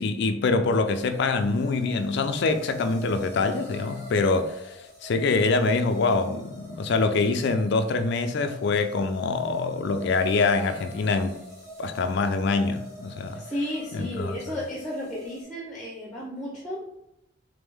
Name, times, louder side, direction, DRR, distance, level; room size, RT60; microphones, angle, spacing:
voice 1, 0.0-11.4 11.8-13.4 13.9-14.4, left 3 dB, 55° left, 0.4 m, -25 dB
sound 1, 0.8-15.4, equal, 15° right, 1.3 m, -45 dB
voice 2, 13.3-16.8, equal, ahead, 0.7 m, -33 dB
3.6 x 3.3 x 3.4 m
head